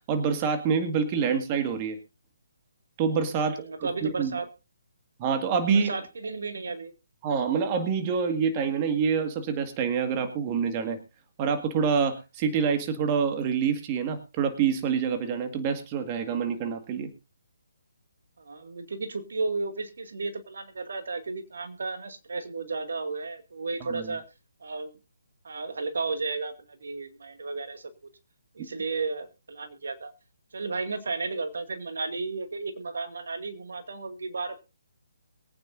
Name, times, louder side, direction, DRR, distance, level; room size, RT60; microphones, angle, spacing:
voice 1, 0.1-2.0 3.0-4.4 5.2-5.9 7.2-11.0 11.4-17.1 23.8-24.1, right 6 dB, 25° right, 7 dB, 1.9 m, -26 dB
voice 2, 3.4-4.5 5.7-6.9 18.4-24.2 24.6-24.9 25.4-28.1 28.5-30.1 30.5-34.6, right 3 dB, 70° right, 8 dB, 2.2 m, -33 dB
23.0 x 9.2 x 2.7 m, 0.28 s
hypercardioid pair, 150°, 0 cm